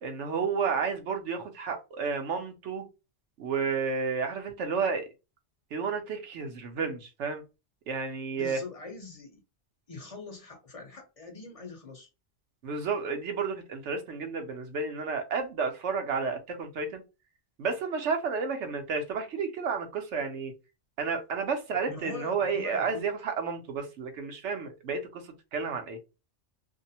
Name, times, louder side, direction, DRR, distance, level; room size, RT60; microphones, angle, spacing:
voice 1, 0.0-2.9 3.4-5.0 5.7-7.4 7.9-8.6 12.6-17.0 17.6-20.5 21.0-25.2 25.5-26.0, right 5 dB, 75° right, 1.0 m, -31 dB
voice 2, 8.3-9.4 9.9-12.1 21.9-23.0, left 3 dB, 35° left, 0.7 m, -42 dB
2.7 x 2.0 x 2.7 m
omnidirectional pair, 1.2 m